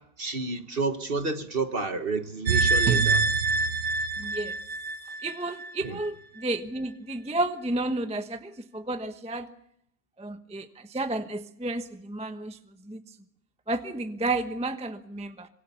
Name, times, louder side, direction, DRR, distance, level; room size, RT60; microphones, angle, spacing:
voice 1, 0.0-3.2 5.8-6.0, right 3 dB, 35° right, 1.4 m, -30 dB
sound 1, 2.5-5.7 6.0-6.1, right 4 dB, 85° right, 1.9 m, -25 dB
voice 2, 4.2-4.6 5.2-9.5 10.2-12.6 12.8-13.0 13.7-15.5, right 2 dB, 5° right, 0.8 m, -32 dB
25.5 x 22.0 x 7.1 m
omnidirectional pair, 1.8 m